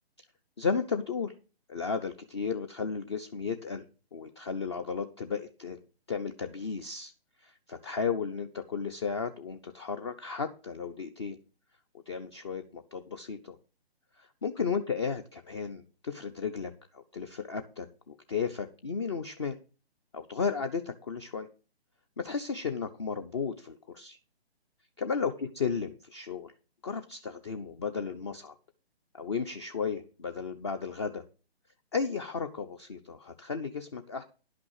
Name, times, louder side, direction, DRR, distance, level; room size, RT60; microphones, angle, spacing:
voice 1, 0.6-1.3 1.7-3.8 4.1-5.8 6.1-7.1 7.4-11.4 12.1-13.6 14.4-19.6 20.1-21.5 22.2-24.2 25.0-26.5 26.8-28.5 29.1-31.2 31.9-34.2, left 5 dB, 25° left, 8 dB, 0.7 m, -34 dB
11.0 x 6.0 x 6.4 m, 0.34 s
figure-of-eight pair, 140°, 32 cm